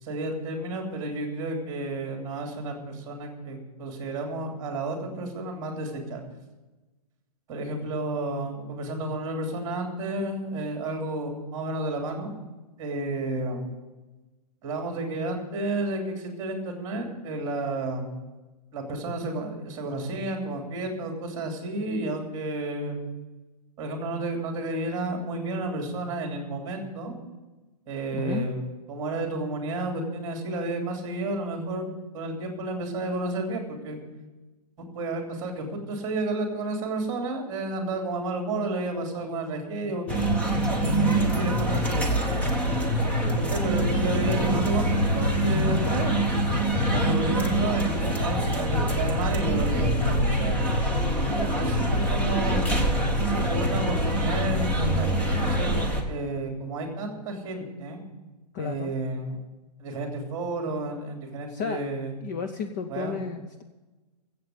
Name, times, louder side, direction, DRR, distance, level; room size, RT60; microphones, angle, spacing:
voice 1, 0.0-6.2 7.5-12.3 12.8-13.7 14.6-18.1 18.7-23.1 23.8-27.2 27.9-28.6 28.9-31.9 32.1-34.0 34.9-40.5 41.1-42.2 43.4-46.2 46.8-50.9 51.5-52.7 53.4-55.8 56.1-58.0 58.6-59.4 59.8-62.1 62.9-63.2, right 2 dB, 20° right, 2 dB, 2.9 m, -31 dB
voice 2, 28.1-28.5 45.7-46.0 58.5-58.9 61.5-61.8 62.2-63.6, left 6 dB, 30° left, 7 dB, 0.6 m, -33 dB
sound 1, 40.1-56.0, right 1 dB, 5° left, 1.1 m, -24 dB
15.0 x 7.9 x 7.7 m, 1.2 s
hypercardioid pair, 165°, 21 cm